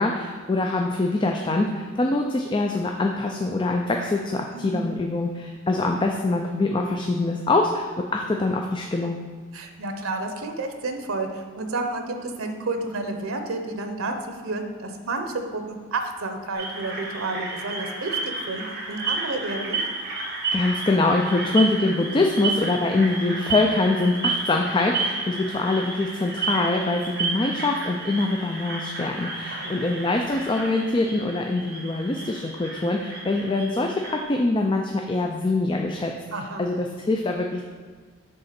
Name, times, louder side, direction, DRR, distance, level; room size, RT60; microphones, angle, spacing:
voice 1, 0.0-9.2 20.5-36.1 36.6-37.6, left 2 dB, 25° left, 2 dB, 0.4 m, -24 dB
voice 2, 4.5-4.9 9.5-19.8 29.5-29.9 36.3-36.7, right 2 dB, 90° right, 6 dB, 0.8 m, -31 dB
sound 1, 16.5-34.2, right 3 dB, 50° right, 1.6 m, -31 dB
7.7 x 3.7 x 5.8 m, 1.5 s
head